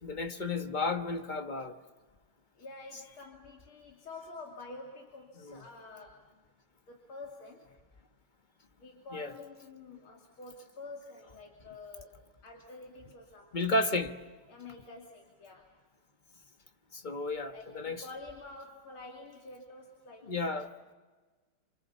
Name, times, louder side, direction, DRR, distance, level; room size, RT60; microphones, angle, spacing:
voice 1, 0.0-1.8 5.4-5.6 9.1-9.3 13.5-14.2 16.9-18.1 20.2-20.7, left 2 dB, 30° left, 1.1 m, -33 dB
voice 2, 2.6-6.3 6.9-7.7 8.8-12.2 12.4-13.7 14.5-15.7 17.5-20.7, left 3 dB, 75° left, 3.5 m, -48 dB
28.0 x 27.0 x 7.1 m
omnidirectional pair, 2.3 m